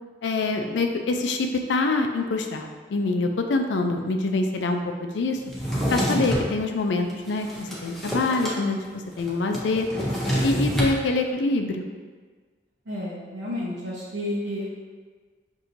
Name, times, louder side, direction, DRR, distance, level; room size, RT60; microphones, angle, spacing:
voice 1, 0.2-5.4 5.9-8.8 9.2-9.9 10.4-11.9, left 3 dB, 75° left, 4 dB, 0.4 m, -25 dB
Drawer open or close, 5.5-6.5 7.1-8.6 8.8-8.9 9.2-11.0, equal, ahead, 0.6 m, -27 dB
voice 2, 12.9-14.7, left 1 dB, 70° right, -9 dB, 0.8 m, -31 dB
5.7 x 2.7 x 2.6 m, 1.5 s
head